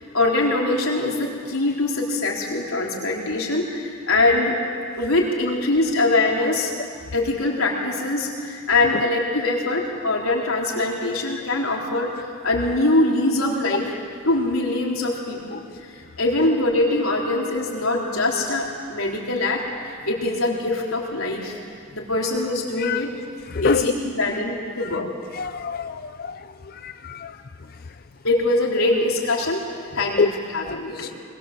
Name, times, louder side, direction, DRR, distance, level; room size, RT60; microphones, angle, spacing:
voice 1, 0.1-4.6 5.0-6.7 7.1-12.1 12.4-13.9 14.3-15.6 16.2-21.6 21.9-23.1 23.6-25.1 28.2-29.6 29.9-31.1, left 2 dB, 90° left, -2 dB, 4.0 m, -23 dB
voice 2, 25.4-26.3 26.8-27.3 30.2-30.3 31.0-31.1, left 5 dB, 45° left, 9 dB, 0.5 m, -25 dB
21.0 x 21.0 x 7.6 m, 2.2 s
head